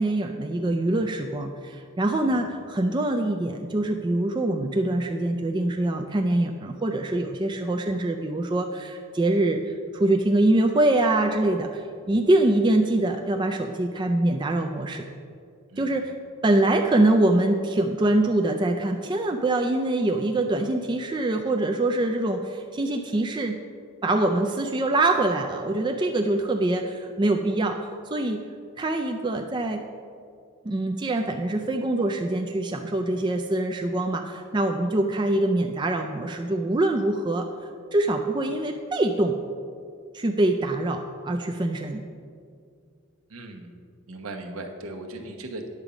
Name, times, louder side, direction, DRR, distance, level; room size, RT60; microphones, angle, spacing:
voice 1, 0.0-15.1 15.8-16.1 16.4-23.6 24.0-27.8 28.1-28.4 28.8-29.8 30.6-37.5 37.9-39.4 40.1-42.0, right 2 dB, 20° right, 3 dB, 0.3 m, -24 dB
voice 2, 43.3-43.7 44.1-45.8, right 2 dB, 75° right, 3 dB, 1.0 m, -38 dB
9.6 x 7.0 x 5.0 m, 2.3 s
head